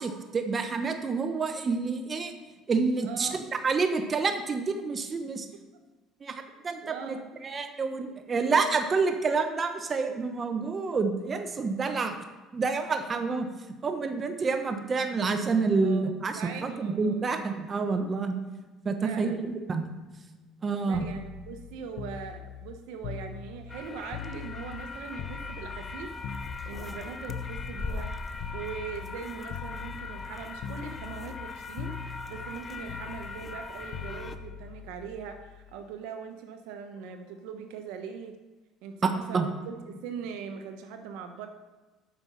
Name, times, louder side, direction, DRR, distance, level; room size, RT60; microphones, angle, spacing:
voice 1, 0.0-2.3 2.7-3.4 3.6-5.5 6.2-7.2 7.4-12.1 12.5-13.5 13.8-18.3 18.8-19.9 20.6-21.1 39.3-39.5, right 4 dB, 30° right, 7 dB, 0.9 m, -28 dB
voice 2, 3.0-3.4 6.7-7.4 15.8-17.3 19.0-19.5 20.8-26.1 26.6-28.1 28.5-38.4 38.8-41.5, right 6 dB, 85° right, 6 dB, 1.0 m, -41 dB
sound 1, 20.9-24.9 25.2-29.2 29.5-30.3 30.6-31.5 31.8-35.8 37.0-37.2, left 7 dB, 70° left, 0.6 m, -41 dB
sound 2, 23.7-34.4, left 3 dB, 25° left, 0.6 m, -40 dB
8.7 x 6.1 x 5.6 m, 1.2 s
supercardioid pair, 105°, 0 cm